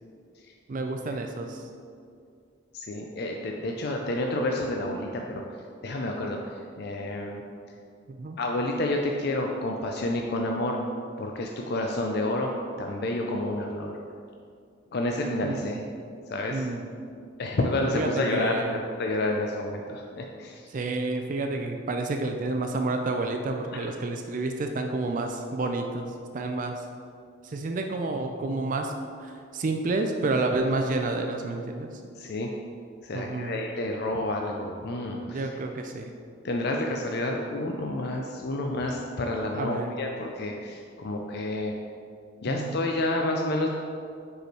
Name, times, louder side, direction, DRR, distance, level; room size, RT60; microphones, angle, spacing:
voice 1, 0.7-1.6 8.2-8.4 15.4-15.8 16.5-16.8 17.9-18.8 20.7-26.8 27.4-28.9 29.2-31.9 33.1-33.6 35.3-36.1 39.6-39.9 42.5-42.8, right 2 dB, 40° right, 4 dB, 0.4 m, -30 dB
voice 2, 2.7-5.4 5.8-7.4 8.4-10.8 11.2-12.5 12.8-13.9 14.9-15.8 16.3-16.7 17.4-18.6 19.0-20.7 23.7-23.9 32.2-32.5 33.0-35.5 36.4-41.7 42.4-43.7, left 1 dB, 55° left, 1 dB, 0.4 m, -29 dB
5.0 x 4.8 x 4.5 m, 2.3 s
head